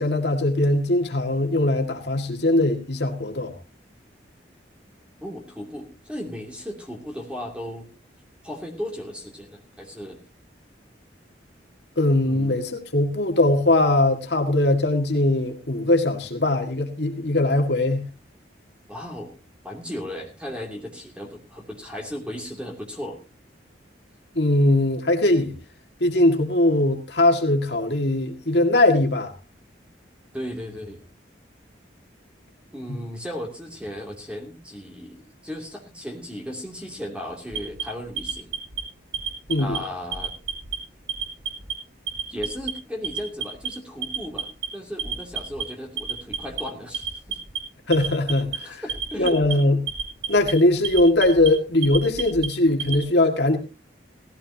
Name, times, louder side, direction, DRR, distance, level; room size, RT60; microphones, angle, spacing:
voice 1, 0.0-3.5 12.0-18.0 24.4-25.5 26.0-29.3 39.5-39.8 47.9-48.8 49.2-49.8 50.3-53.6, left 1 dB, 65° left, 2.0 m, -20 dB
voice 2, 5.2-7.9 8.4-10.2 12.2-12.6 18.9-19.3 19.6-23.2 30.3-31.0 32.7-38.5 39.6-40.3 42.3-47.4 48.6-49.4, equal, 5° right, 2.8 m, -35 dB
Alarm, 37.5-38.8 39.1-39.8 40.1-40.8 41.1-41.7 42.1-42.7 43.0-43.7 44.0-44.7 45.0-45.6 46.0-46.6 46.9-47.6 47.9-48.6 48.9-49.5 49.9-50.5 50.8-51.5 51.8-53.0, right 7 dB, 60° right, 4.5 m, -30 dB
18.0 x 15.0 x 2.8 m
head